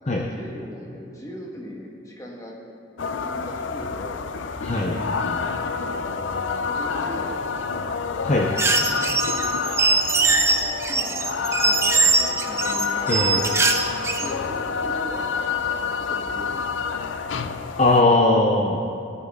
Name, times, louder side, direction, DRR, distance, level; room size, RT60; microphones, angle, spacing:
voice 1, 0.0-2.5 3.0-4.2 5.9-7.4 7.7-7.9 8.5-9.0 10.9-13.5 14.2-15.3 15.7-16.9, left 1 dB, 15° left, -2 dB, 1.5 m, -39 dB
sound 1, 3.0-18.0, left 5 dB, 75° left, 0.5 m, -28 dB
voice 2, 4.6-5.0 8.2-8.5 13.1-13.4 17.8-18.8, left 2 dB, 35° left, 1 dB, 0.6 m, -19 dB
sound 2, 8.6-14.3, right 3 dB, 15° right, 0.5 m, -21 dB
18.5 x 8.4 x 3.7 m, 2.5 s
head